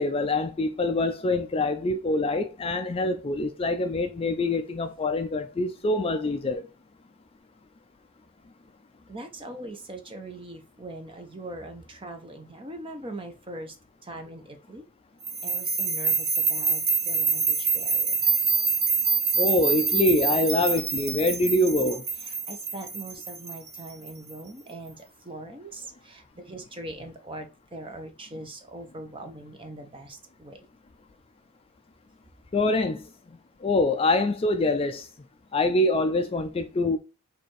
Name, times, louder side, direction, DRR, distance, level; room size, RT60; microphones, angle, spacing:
voice 1, 0.0-6.6 19.4-22.1 32.5-33.0 33.6-35.1 35.5-37.0, left 2 dB, 25° left, 0.3 m, -25 dB
voice 2, 9.1-13.8 14.0-14.8 15.4-18.3 22.2-30.7, right 1 dB, 25° right, 0.7 m, -41 dB
sound 1, 15.2-24.3, right 5 dB, 70° right, 1.2 m, -26 dB
4.4 x 2.6 x 4.6 m
head